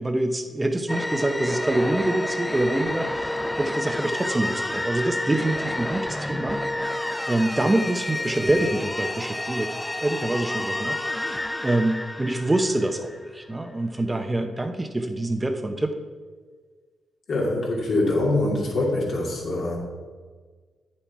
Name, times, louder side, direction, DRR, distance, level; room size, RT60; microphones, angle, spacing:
voice 1, 0.0-6.6 7.3-11.0 11.2-11.3 11.6-16.0, right 1 dB, 20° right, 6 dB, 0.8 m, -25 dB
sound 1, 0.9-13.4, left 1 dB, 10° left, 0.4 m, -30 dB
voice 2, 17.3-19.8, left 2 dB, 65° left, -3 dB, 2.7 m, -24 dB
8.8 x 7.2 x 4.7 m, 1.5 s
cardioid pair, 80°, 0 cm